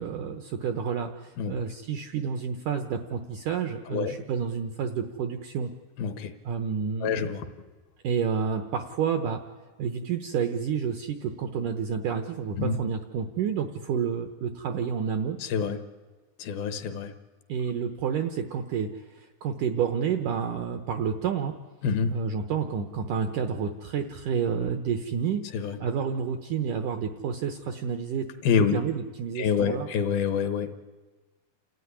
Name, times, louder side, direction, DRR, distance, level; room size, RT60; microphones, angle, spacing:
voice 1, 0.0-5.7 6.4-7.3 8.0-9.4 9.8-15.4 17.5-21.5 22.1-28.3 28.7-29.9, right 7 dB, 75° right, 7 dB, 1.9 m, -29 dB
voice 2, 6.0-6.3 7.0-7.5 12.6-12.8 15.4-15.8 16.4-17.1 21.8-22.1 25.5-25.8 28.4-28.8 29.4-30.8, left 6 dB, 70° left, 9 dB, 2.8 m, -26 dB
28.5 x 14.0 x 9.8 m, 1.3 s
omnidirectional pair, 4.8 m